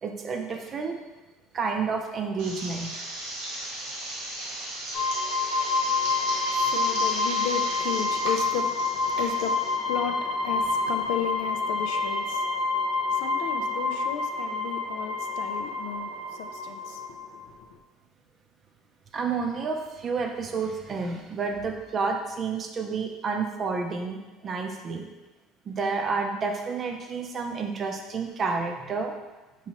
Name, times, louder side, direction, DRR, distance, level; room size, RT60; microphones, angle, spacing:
voice 1, 0.0-1.0 1.5-2.9 19.1-25.1 25.7-29.1, right 4 dB, 35° right, 0.5 m, -30 dB
sound 1, 2.4-9.7, right 1 dB, 80° right, 1.1 m, -36 dB
sound 2, 4.9-17.4, left 3 dB, 65° left, 0.9 m, -28 dB
voice 2, 5.8-17.8, left 9 dB, 80° left, 0.3 m, -35 dB
4.5 x 2.9 x 2.9 m
cardioid pair, 130°, 0 cm